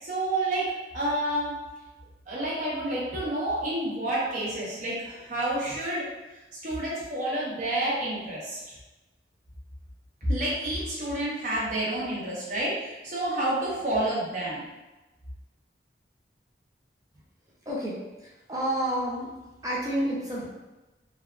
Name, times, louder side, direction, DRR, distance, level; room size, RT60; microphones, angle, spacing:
voice 1, 0.0-1.6 2.3-6.1 6.6-8.8 10.3-14.7, right 1 dB, 45° right, -6 dB, 0.9 m, -29 dB
voice 2, 17.7-19.3 19.6-20.5, right 1 dB, 20° right, -6 dB, 0.5 m, -30 dB
3.3 x 2.4 x 2.4 m, 1.1 s
head